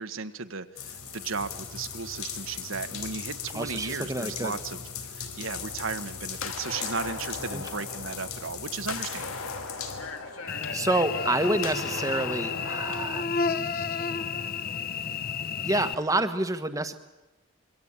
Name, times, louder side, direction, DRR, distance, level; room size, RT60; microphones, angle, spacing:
voice 1, 0.0-4.8 5.1-9.5, right 4 dB, 65° right, 8 dB, 1.3 m, -35 dB
sound 1, 0.7-10.6 11.2-11.3 11.9-12.1, left 7 dB, 90° left, 4.0 m, -39 dB
voice 2, 3.5-4.6 7.5-7.6 10.4-13.3 15.6-16.9, right 2 dB, 15° right, 10 dB, 1.3 m, -28 dB
sound 2, 5.5-13.3, left 4 dB, 70° left, 2.8 m, -39 dB
Cricket / Buzz, 10.5-15.9, left 5 dB, 45° left, 0.9 m, -31 dB
27.0 x 23.0 x 8.9 m, 1.1 s
head